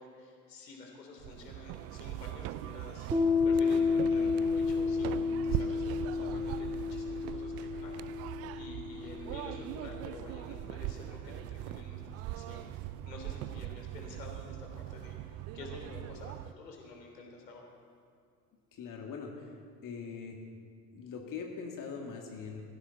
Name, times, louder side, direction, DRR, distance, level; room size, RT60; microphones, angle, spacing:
voice 1, 0.0-3.1 3.4-12.7 13.0-17.7, left 3 dB, 80° left, 1 dB, 3.2 m, -49 dB
sound 1, 1.2-16.5, right 15 dB, 35° right, 0.4 m, -41 dB
Piano, 3.1-10.4, left 5 dB, 10° right, 2.6 m, -31 dB
voice 2, 6.2-6.5 18.7-19.6 19.8-20.4 20.9-22.6, left 5 dB, 40° left, 1 dB, 2.2 m, -42 dB
22.5 x 15.5 x 4.1 m, 2.3 s
figure-of-eight pair, 65°, 48 cm